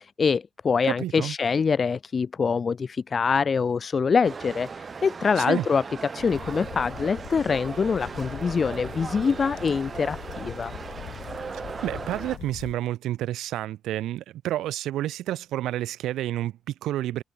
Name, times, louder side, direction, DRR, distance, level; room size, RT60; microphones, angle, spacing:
voice 1, 0.0-5.8 6.1-10.7, left 5 dB, 40° left, 0.6 m, -25 dB
voice 2, 0.9-1.3 5.4-5.7 11.8-17.2, right 13 dB, 85° right, 0.4 m, -29 dB
sound 1, 4.2-12.4, right 5 dB, 35° right, 3.8 m, -38 dB
sound 2, 6.2-12.7, left 12 dB, 80° left, 1.2 m, -41 dB
cardioid pair, 90°, 0 cm